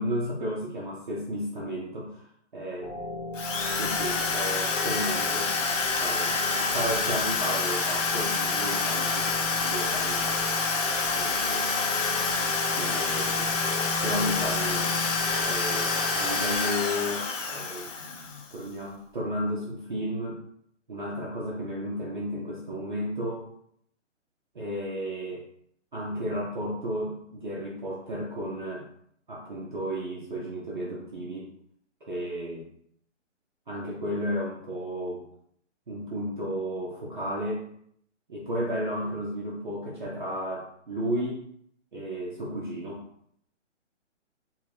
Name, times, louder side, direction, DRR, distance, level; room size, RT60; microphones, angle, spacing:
voice 1, 0.0-2.9 3.8-5.5 6.0-6.4 6.7-10.4 11.1-11.7 12.7-13.5 14.0-14.9 15.4-20.4 20.9-23.5 24.5-25.5 25.9-28.9 29.3-31.5 32.0-32.7 33.7-35.3 35.9-37.6 38.3-41.4 41.9-43.0, equal, 40° right, -4 dB, 0.5 m, -33 dB
sound 1, 2.8-16.6, left 3 dB, 50° left, 0.5 m, -37 dB
Drill, 3.3-18.5, left 4 dB, 90° left, 0.8 m, -27 dB
2.7 x 2.6 x 3.1 m, 0.68 s
hypercardioid pair, 170°, 37 cm